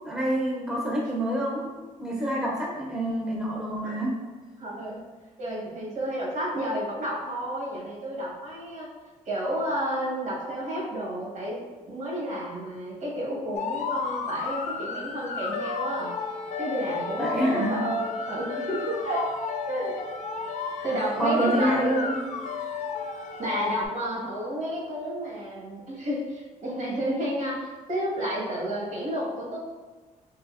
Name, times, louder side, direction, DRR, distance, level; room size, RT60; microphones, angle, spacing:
voice 1, 0.0-1.7 2.0-4.2 17.2-17.7 21.2-22.2, right 1 dB, 5° right, -3 dB, 0.7 m, -27 dB
voice 2, 4.6-5.0 5.4-8.9 9.2-16.1 16.6-19.3 19.6-19.9 20.8-21.7 23.4-29.6, right 1 dB, 65° right, -5 dB, 1.3 m, -31 dB
sound 1, 13.5-23.9, left 5 dB, 55° left, 0.4 m, -33 dB
3.5 x 2.6 x 2.4 m, 1.3 s
cardioid pair, 85°, 14 cm